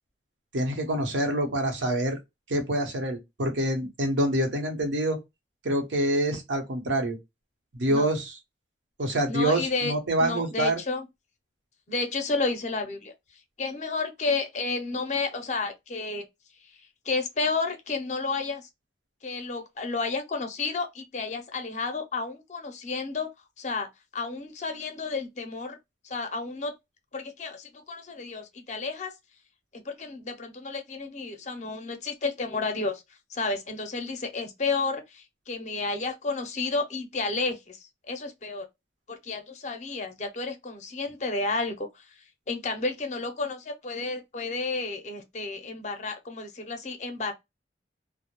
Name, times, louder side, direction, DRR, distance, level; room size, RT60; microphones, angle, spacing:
voice 1, 0.5-2.2 2.5-5.2 5.6-7.2 7.7-8.4 9.0-10.8, right 1 dB, 80° right, 0.8 m, -26 dB
voice 2, 9.3-9.9 10.2-11.1 11.9-13.1 13.6-16.2 16.6-16.8 17.0-18.7 19.2-23.3 23.6-25.8 26.0-26.7 27.1-29.1 29.7-33.0 33.3-38.7 39.1-47.3, left 3 dB, 40° left, 0.5 m, -31 dB
2.2 x 2.0 x 2.9 m
head